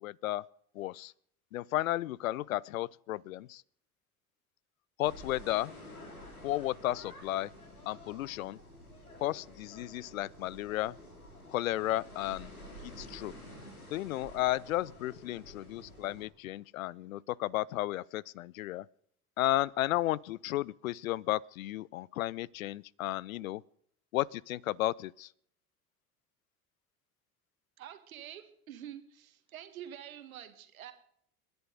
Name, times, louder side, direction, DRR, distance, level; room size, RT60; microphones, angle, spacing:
voice 1, 0.0-0.5 0.8-1.1 1.5-3.6 5.0-5.7 6.4-7.5 7.9-8.6 9.2-10.9 11.5-12.5 12.8-13.3 13.9-18.9 19.4-23.6 24.1-25.3, left 15 dB, 70° left, 0.5 m, -33 dB
sound 1, 5.0-16.3, equal, 85° left, 2.5 m, -50 dB
voice 2, 27.8-30.9, right 10 dB, 70° right, 1.9 m, -47 dB
29.5 x 10.5 x 3.9 m
figure-of-eight pair, 70°, 43 cm